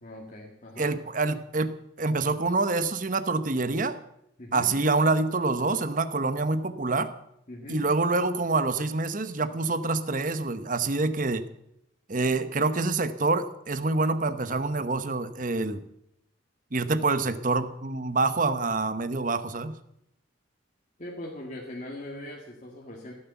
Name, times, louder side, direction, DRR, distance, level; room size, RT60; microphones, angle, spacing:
voice 1, 0.0-0.9 4.4-4.7 7.5-7.8 21.0-23.1, left 1 dB, 40° left, -2 dB, 2.0 m, -40 dB
voice 2, 0.8-4.0 4.5-7.1 7.7-11.4 12.1-15.8 16.7-19.7, right 3 dB, 40° right, 12 dB, 1.0 m, -26 dB
16.5 x 9.7 x 7.1 m, 0.78 s
head